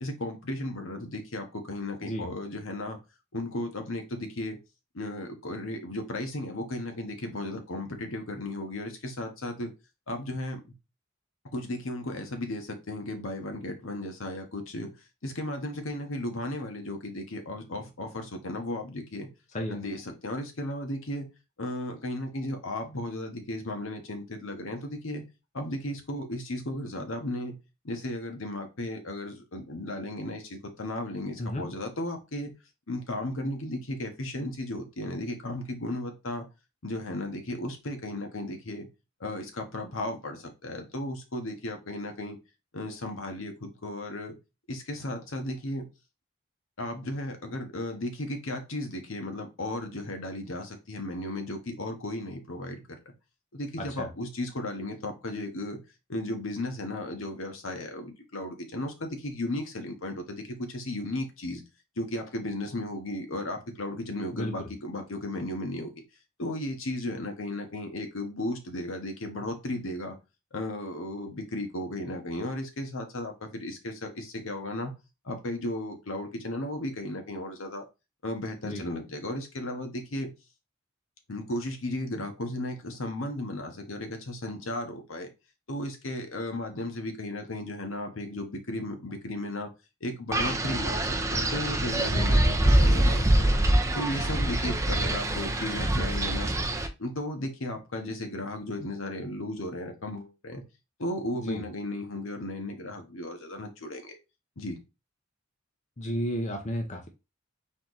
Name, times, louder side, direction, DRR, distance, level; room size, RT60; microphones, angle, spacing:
voice 1, 0.0-3.0 3.3-4.6 4.9-9.7 10.1-10.7 11.5-14.9 15.2-19.3 19.7-21.3 21.6-25.2 25.5-27.6 27.8-32.5 32.9-36.5 36.8-38.9 39.2-42.4 42.7-44.4 44.7-45.9 46.8-53.0 53.5-55.8 56.1-61.6 62.0-65.9 66.4-70.1 70.5-74.9 75.2-77.8 78.2-80.3 81.3-85.3 85.7-89.7 90.0-93.6 93.9-96.5 97.0-100.6 101.0-104.2 104.6-104.8, left 1 dB, 70° left, 1.1 m, -35 dB
voice 2, 53.8-54.1 64.3-64.5 78.6-78.8 92.1-92.4 101.4-101.6 106.0-107.1, equal, 35° left, 0.7 m, -32 dB
Wind, 90.3-96.9, right 1 dB, 15° right, 0.6 m, -24 dB
4.3 x 3.1 x 3.9 m
head